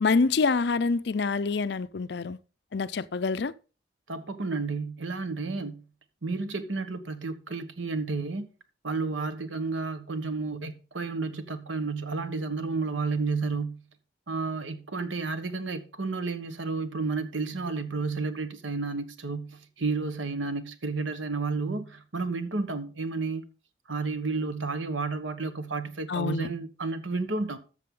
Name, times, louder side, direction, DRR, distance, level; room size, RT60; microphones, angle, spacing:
voice 1, 0.0-2.4 2.7-3.5 26.1-26.5, left 4 dB, 65° left, 0.5 m, -26 dB
voice 2, 4.1-5.8 6.2-8.5 8.8-13.8 14.3-23.5 23.9-27.6, right 4 dB, 90° right, 1.3 m, -31 dB
13.0 x 6.8 x 3.8 m
head